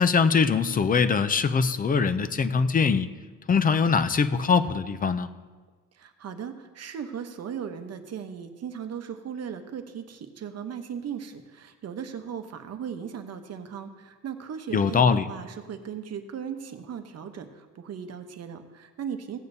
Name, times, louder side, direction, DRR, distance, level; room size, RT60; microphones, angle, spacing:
voice 1, 0.0-3.1 3.5-5.3 14.7-15.2, left 5 dB, 25° left, 12 dB, 0.4 m, -22 dB
voice 2, 5.9-19.4, right 7 dB, 50° right, 7 dB, 0.9 m, -37 dB
16.5 x 8.6 x 2.7 m, 1.4 s
cardioid pair, 145°, 34 cm